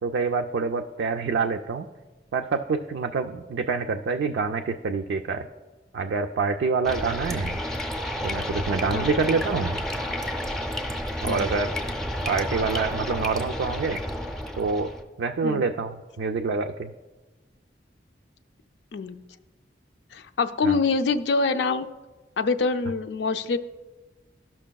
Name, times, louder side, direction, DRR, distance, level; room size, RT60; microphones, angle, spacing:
voice 1, 0.0-1.9 2.3-5.4 5.9-7.6 8.2-9.8 11.2-11.7 12.3-14.0 14.6-14.9 15.2-16.9 20.6-20.8, right 4 dB, 85° right, 4 dB, 0.3 m, -26 dB
sound 1, 6.8-15.0, equal, ahead, 0.5 m, -30 dB
voice 2, 20.1-21.9 22.4-23.6, left 4 dB, 75° left, 10 dB, 0.4 m, -25 dB
14.0 x 5.8 x 2.3 m, 1.2 s
head